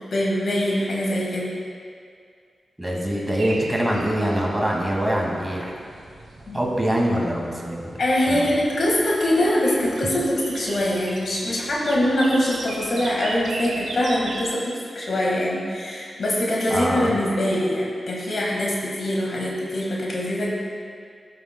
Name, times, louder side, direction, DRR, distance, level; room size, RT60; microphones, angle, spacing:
voice 1, 0.0-1.5 6.5-6.6 8.0-20.5, left 1 dB, 70° left, -3 dB, 1.6 m, -23 dB
voice 2, 2.8-5.7 6.5-7.8 8.3-8.5 16.7-17.1, right 1 dB, 15° right, -2 dB, 2.0 m, -24 dB
sound 1, 3.4-14.5, right 2 dB, 85° right, 0.8 m, -38 dB
12.5 x 6.7 x 2.2 m, 2.2 s
cardioid pair, 45°, 0 cm